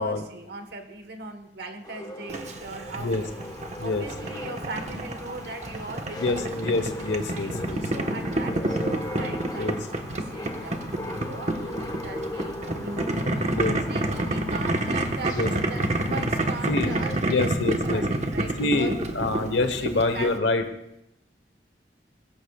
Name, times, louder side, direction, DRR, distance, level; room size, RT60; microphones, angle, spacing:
voice 1, 0.0-3.3 3.8-6.8 7.3-7.5 7.8-13.5 13.9-19.1 19.8-20.3, right 2 dB, 65° right, 6 dB, 1.3 m, -39 dB
sound 1, 1.8-17.2, left 1 dB, 20° left, 1.2 m, -38 dB
Boiling, 2.3-20.4, right 1 dB, 40° right, 1.2 m, -29 dB
voice 2, 6.2-7.8 9.6-9.8 13.6-13.8 15.3-15.5 16.6-16.9 17.2-18.0 18.6-20.6, left 2 dB, 80° left, 7 dB, 1.1 m, -26 dB
21.0 x 16.5 x 2.4 m, 0.82 s
head